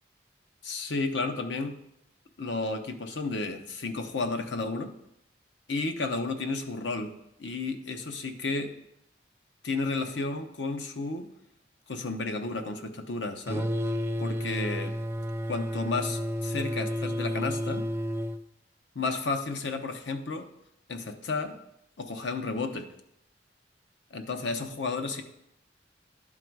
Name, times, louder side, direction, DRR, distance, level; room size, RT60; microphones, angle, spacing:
voice 1, 0.6-1.7 2.4-4.9 5.7-8.7 9.6-11.3 11.9-13.7 14.2-14.9 15.5-17.9 18.9-20.5 20.9-21.6 22.0-22.8 24.1-25.2, left 3 dB, 85° left, 7 dB, 0.8 m, -32 dB
sound 1, 13.5-18.4, equal, 15° right, 0.4 m, -31 dB
11.5 x 3.8 x 4.6 m, 0.81 s
head